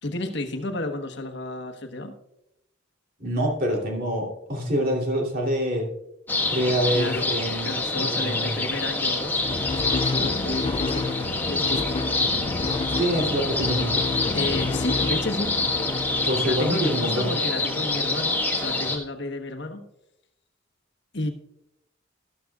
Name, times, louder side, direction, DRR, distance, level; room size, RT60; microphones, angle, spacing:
voice 1, 0.0-2.1 6.9-7.3 7.6-9.4 9.7-12.2 14.3-15.6 16.4-19.8 21.1-21.3, left 2 dB, 60° left, 4 dB, 1.2 m, -32 dB
voice 2, 3.2-5.9 6.5-8.6 12.9-14.1 16.2-17.3, equal, 45° right, -1 dB, 3.0 m, -26 dB
sound 1, 6.3-19.0, left 2 dB, 10° left, 1.4 m, -27 dB
sound 2, 9.4-16.8, left 4 dB, 25° left, 0.3 m, -30 dB
13.0 x 13.0 x 2.4 m, 0.82 s
head